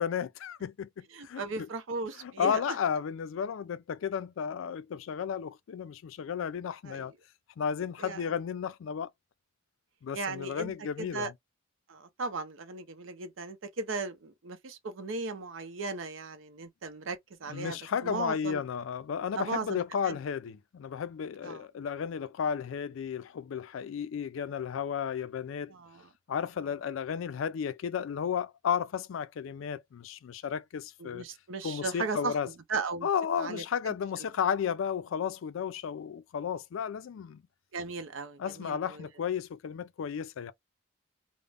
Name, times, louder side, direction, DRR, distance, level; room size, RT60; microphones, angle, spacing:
voice 1, 0.0-1.4 2.2-7.1 7.6-9.1 10.0-11.3 17.5-25.7 26.3-31.3 31.6-32.5 33.0-37.4 38.4-40.5, left 7 dB, 80° left, 0.3 m, -33 dB
voice 2, 1.1-2.6 6.9-7.1 8.0-8.2 10.1-11.3 11.9-17.8 18.0-18.6 19.4-20.2 21.4-21.6 25.7-26.1 31.0-32.4 32.7-33.1 33.4-33.9 34.2-34.3 37.7-39.1, right 3 dB, 75° right, 0.6 m, -37 dB
2.4 x 2.1 x 3.3 m
head